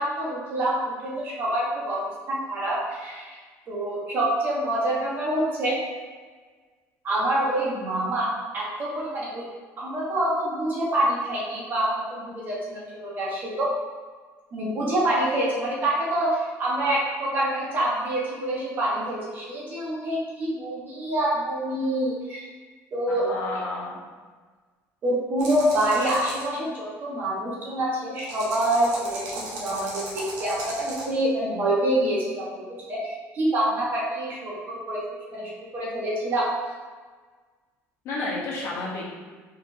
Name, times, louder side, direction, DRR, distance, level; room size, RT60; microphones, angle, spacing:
voice 1, 0.0-3.4 3.7-5.8 7.0-9.4 9.8-13.7 14.5-22.5 22.9-23.6 25.0-32.5 32.9-35.1 35.3-36.5, right 1 dB, 35° right, -5 dB, 1.1 m, -26 dB
voice 2, 23.1-24.0 38.0-39.1, left 3 dB, 50° left, -4 dB, 1.1 m, -31 dB
sound 1, 25.4-26.5 28.1-31.1, right 2 dB, 85° right, 1.2 m, -36 dB
4.3 x 4.3 x 2.7 m, 1.4 s
cardioid pair, 175°, 6 cm